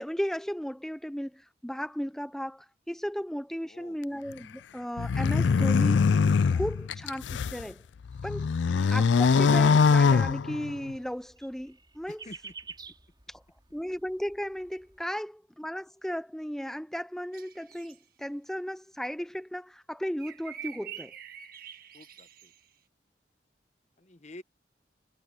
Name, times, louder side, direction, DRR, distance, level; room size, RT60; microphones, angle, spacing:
voice 1, 0.0-6.1 6.5-7.8 8.2-8.5 8.9-12.2 13.3-13.4 13.7-21.1, equal, 5° left, 0.6 m, -35 dB
voice 2, 3.6-4.0 8.8-9.0 12.3-12.5 21.9-22.5 24.0-24.4, left 1 dB, 40° left, 1.1 m, -48 dB
sound 1, 5.0-7.6 8.1-10.9, left 5 dB, 75° left, 0.4 m, -23 dB
sound 2, 8.1-15.0, right 4 dB, 25° right, 4.5 m, -52 dB
sound 3, 17.3-18.0 20.2-22.6, right 9 dB, 55° right, 1.9 m, -45 dB
head